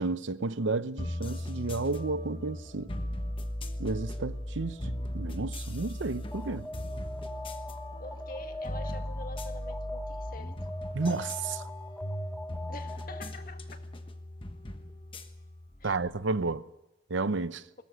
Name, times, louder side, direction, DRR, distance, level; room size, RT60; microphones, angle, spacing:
voice 1, 0.0-2.9 3.8-6.7 10.9-11.6 15.8-16.6 17.1-17.6, right 3 dB, 75° right, 0.7 m, -32 dB
sound 1, 1.0-16.2, left 1 dB, 25° left, 1.2 m, -38 dB
Alarm, 6.3-13.4, left 1 dB, 5° left, 1.0 m, -42 dB
voice 2, 8.0-10.6 12.7-13.6 15.8-16.0, left 2 dB, 45° left, 1.7 m, -46 dB
21.0 x 18.0 x 7.9 m
head